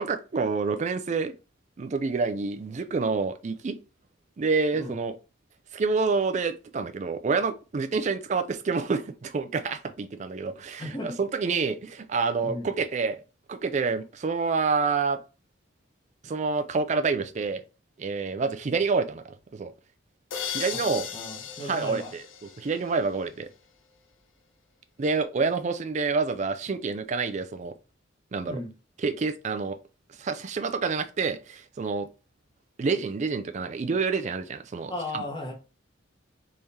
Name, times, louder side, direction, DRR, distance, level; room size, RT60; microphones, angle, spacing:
voice 1, 0.0-1.3 1.8-3.8 4.4-5.1 5.7-13.2 13.5-15.2 16.2-17.6 18.0-19.2 19.5-19.7 20.5-21.1 21.6-22.2 22.6-23.5 25.0-27.7 28.3-28.6 29.0-29.8 30.2-32.1 32.8-35.2, right 4 dB, 35° right, 0.4 m, -28 dB
voice 2, 10.8-11.2 12.4-12.7 20.6-20.8 21.1-22.1 28.5-28.7 34.9-35.5, left 1 dB, 25° left, 1.0 m, -35 dB
sound 1, 20.3-23.1, left 8 dB, 75° left, 0.5 m, -36 dB
3.5 x 3.2 x 2.7 m
head